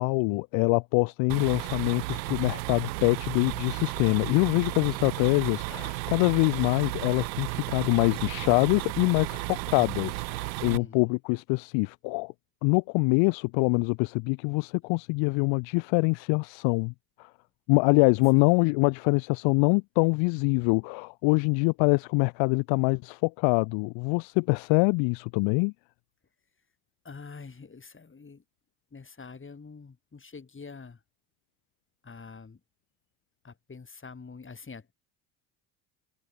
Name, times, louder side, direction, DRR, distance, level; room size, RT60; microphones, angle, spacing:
voice 1, 0.0-12.3 12.6-16.9 17.2-17.3 17.7-25.7, left 32 dB, 65° left, 0.7 m, -24 dB
sound 1, 1.3-10.8, right 22 dB, 85° right, 0.7 m, -34 dB
voice 2, 10.6-11.1 18.3-18.5 27.0-28.4 28.9-31.0 32.0-32.6 33.4-34.9, left 4 dB, 25° left, 6.1 m, -45 dB
hypercardioid pair, 75°, 50 cm